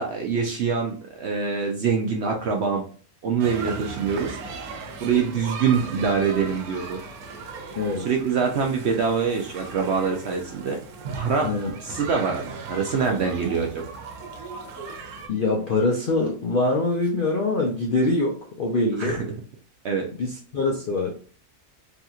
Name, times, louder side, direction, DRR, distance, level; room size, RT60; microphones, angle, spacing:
voice 1, 0.0-2.8 3.2-4.4 5.0-7.0 8.0-10.8 11.1-11.5 11.8-13.8 19.0-19.2 19.8-20.1, right 5 dB, 65° right, 1 dB, 0.7 m, -24 dB
sound 1, 3.4-15.3, right 4 dB, 90° right, 1.1 m, -37 dB
voice 2, 7.7-8.1 11.4-11.7 15.3-19.2 20.2-21.1, left 2 dB, 65° left, 0 dB, 0.5 m, -24 dB
3.5 x 2.7 x 2.3 m, 0.41 s
omnidirectional pair, 1.5 m